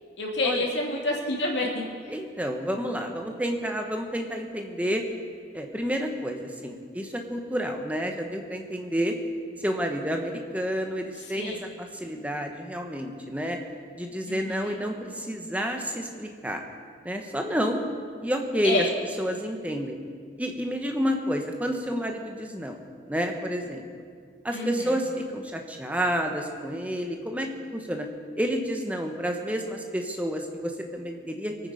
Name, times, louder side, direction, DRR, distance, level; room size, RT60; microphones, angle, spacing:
voice 1, 0.2-1.8 11.4-11.6 14.3-14.8 18.6-18.9 24.5-25.0, left 2 dB, 85° left, -1 dB, 2.6 m, -28 dB
voice 2, 2.1-5.0 5.5-9.2 9.6-13.6 13.9-16.6 17.0-17.8 18.2-18.8 19.2-20.0 20.4-22.8 23.1-23.9 24.4-28.1 28.4-31.7, equal, 10° right, 3 dB, 1.1 m, -30 dB
23.0 x 9.3 x 5.1 m, 2.1 s
head